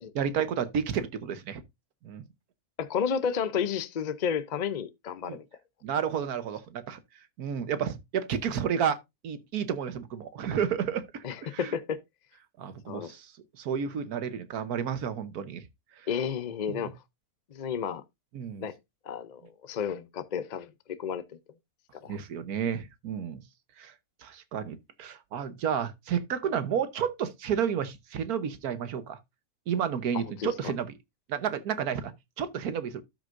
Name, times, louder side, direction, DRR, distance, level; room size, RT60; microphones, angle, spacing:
voice 1, 0.1-1.6 2.0-2.2 5.2-5.4 5.8-7.0 7.4-9.0 9.2-11.8 12.6-13.3 13.6-15.6 15.9-16.1 16.7-16.8 18.3-18.7 22.1-23.4 23.8-23.9 24.2-29.2 29.7-30.9 31.3-32.1 32.4-33.0, right 8 dB, 75° right, 1.4 m, -31 dB
voice 2, 2.8-5.5 11.2-12.0 12.9-13.1 16.1-16.9 17.5-18.0 18.6-18.7 19.1-21.2 21.9-22.2 30.4-30.7, left 7 dB, 60° left, 0.4 m, -32 dB
12.5 x 6.2 x 2.5 m
omnidirectional pair, 1.6 m